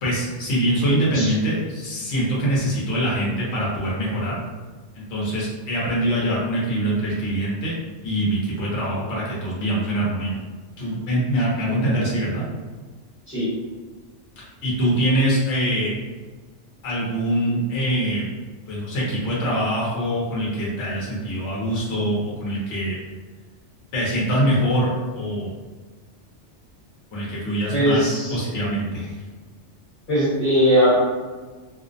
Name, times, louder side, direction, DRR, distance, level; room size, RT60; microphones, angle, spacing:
voice 1, 0.0-4.4 4.9-7.7 8.0-10.4 10.8-12.5 14.6-15.9 16.8-18.2 18.7-23.0 23.9-25.5 27.1-29.2, right 1 dB, 70° left, -6 dB, 1.0 m, -23 dB
voice 2, 27.7-28.4 30.1-30.9, equal, 45° left, -11 dB, 1.3 m, -19 dB
2.5 x 2.0 x 2.5 m, 1.4 s
omnidirectional pair, 1.2 m